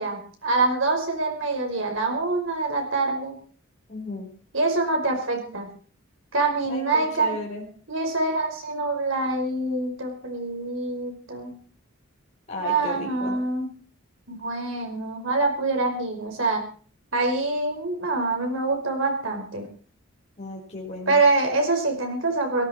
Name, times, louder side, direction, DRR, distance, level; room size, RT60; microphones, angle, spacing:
voice 1, 0.0-3.4 4.5-5.7 6.3-7.3 7.9-11.6 12.6-13.7 14.3-16.6 17.1-19.7 21.1-22.7, right 3 dB, 65° right, 3 dB, 5.2 m, -25 dB
voice 2, 3.9-4.3 6.7-7.6 12.5-13.4 20.4-21.2, left 2 dB, 30° left, -3 dB, 4.6 m, -34 dB
18.0 x 16.5 x 4.5 m, 0.43 s
head